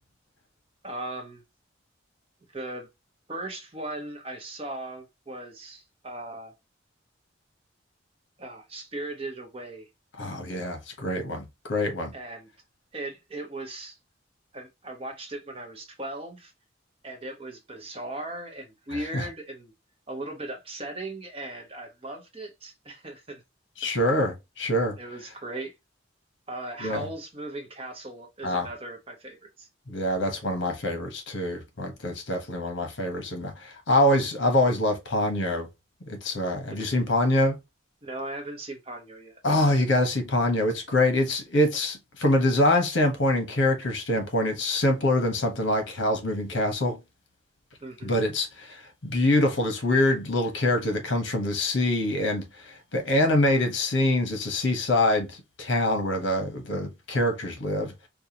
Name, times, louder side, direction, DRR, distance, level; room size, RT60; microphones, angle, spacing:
voice 1, 0.8-1.4 2.5-2.9 3.3-6.5 8.4-9.9 12.1-12.5 12.9-14.0 14.5-16.5 17.0-19.7 20.1-23.4 25.0-25.7 26.5-29.7 38.0-39.4 47.8-48.1, right 2 dB, 30° right, 0.9 m, -38 dB
voice 2, 10.2-12.1 18.9-19.3 23.8-25.0 26.8-27.0 28.4-28.7 29.9-35.7 36.0-37.6 39.4-47.0 48.0-58.1, left 1 dB, 75° left, 1.1 m, -25 dB
4.9 x 2.3 x 2.8 m
head